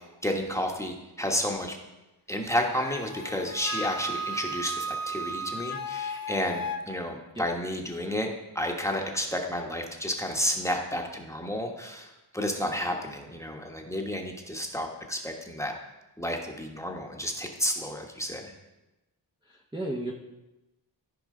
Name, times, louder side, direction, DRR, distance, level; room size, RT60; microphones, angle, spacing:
voice 1, 0.2-1.8 2.3-15.7 16.2-18.5, equal, 5° left, 1 dB, 1.2 m, -31 dB
Wind instrument woodwind instrument, 2.8-6.8, equal, 50° left, 0.8 m, -34 dB
voice 2, 19.4-20.1, right 1 dB, 10° right, -3 dB, 0.9 m, -34 dB
14.0 x 4.9 x 3.8 m, 1.0 s
wide cardioid pair, 50°, 44 cm